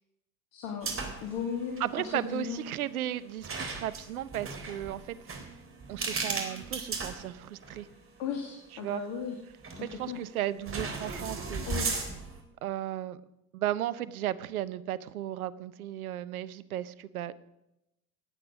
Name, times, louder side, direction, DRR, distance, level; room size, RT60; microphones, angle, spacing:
voice 1, 0.5-0.9 1.2-2.6 8.2-9.4 9.7-10.2 11.7-12.0, left 7 dB, 60° left, 3 dB, 2.2 m, -36 dB
sound 1, 0.8-1.4 1.6-1.8 3.4-7.8 8.3-8.4 9.6-10.1 10.7-12.4, right 4 dB, 30° right, 3.5 m, -36 dB
voice 2, 1.8-5.2 5.9-7.9 8.8-9.0 9.8-11.7 12.6-13.2 13.5-17.3, right 12 dB, 80° right, 17 dB, 0.8 m, -35 dB
18.0 x 8.7 x 6.2 m, 0.90 s
hypercardioid pair, 70°, 43 cm